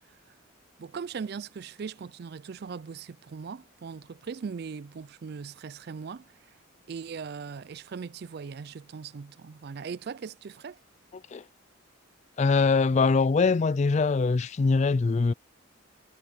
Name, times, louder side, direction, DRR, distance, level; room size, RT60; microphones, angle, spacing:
voice 1, 0.8-6.6 6.9-10.8, right 5 dB, 50° right, 0.4 m, -39 dB
voice 2, 12.4-15.3, left 4 dB, 35° left, 0.3 m, -23 dB
head